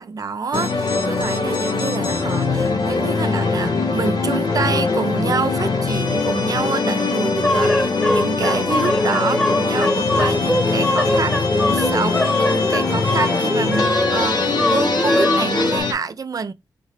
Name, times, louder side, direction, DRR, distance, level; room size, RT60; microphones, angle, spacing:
voice 1, 0.0-16.5, right 5 dB, 55° right, 0.5 m, -27 dB
sound 1, 0.5-15.9, left 4 dB, 80° left, 1.0 m, -22 dB
sound 2, 7.4-15.8, left 1 dB, 5° left, 0.5 m, -22 dB
4.4 x 2.6 x 3.3 m
wide cardioid pair, 90°, 7 cm